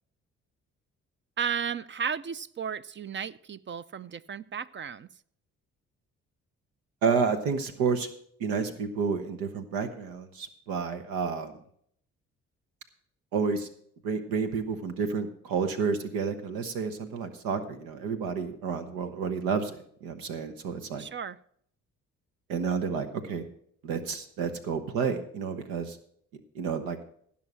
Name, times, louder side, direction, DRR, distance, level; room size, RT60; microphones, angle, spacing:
voice 1, 1.4-5.1 21.0-21.4, right 7 dB, 35° right, 16 dB, 0.5 m, -34 dB
voice 2, 7.0-8.1 8.4-11.5 13.3-13.7 14.0-21.0 22.5-23.4 23.8-26.0 26.5-27.0, right 5 dB, 85° right, 8 dB, 1.1 m, -30 dB
15.5 x 5.7 x 6.2 m, 0.65 s
supercardioid pair, 55°, 34 cm